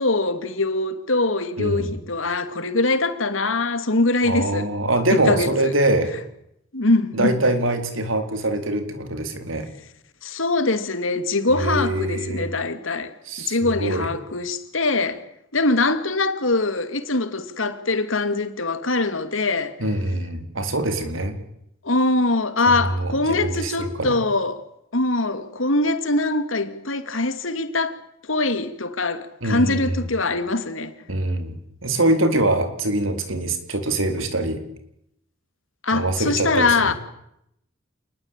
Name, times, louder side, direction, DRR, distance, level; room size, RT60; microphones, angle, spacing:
voice 1, 0.0-4.7 5.1-5.7 6.7-7.4 10.2-13.1 13.4-15.2 15.5-19.7 21.8-24.6 24.9-28.0 28.3-31.0 35.8-36.9, left 2 dB, 80° left, 2.6 m, -23 dB
voice 2, 1.6-1.9 4.2-6.1 7.1-9.7 11.5-12.5 13.3-14.1 19.8-21.4 22.7-24.2 29.4-29.8 31.1-31.5 31.8-34.6 35.9-36.9, right 1 dB, 80° right, 4.1 m, -23 dB
28.0 x 20.0 x 9.1 m
head